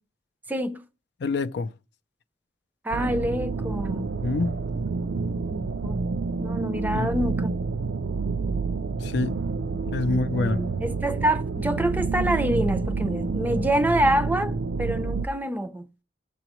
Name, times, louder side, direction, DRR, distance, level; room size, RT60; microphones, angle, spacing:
voice 1, 0.5-0.8 2.8-4.1 5.5-6.0 6.4-7.5 10.0-15.9, right 1 dB, 10° right, 0.5 m, -27 dB
voice 2, 1.2-1.7 4.2-4.6 6.9-7.1 9.0-9.4 9.9-10.6, left 3 dB, 65° left, 0.4 m, -26 dB
sound 1, 2.9-15.3, right 4 dB, 90° right, 0.5 m, -28 dB
18.0 x 6.9 x 3.0 m
head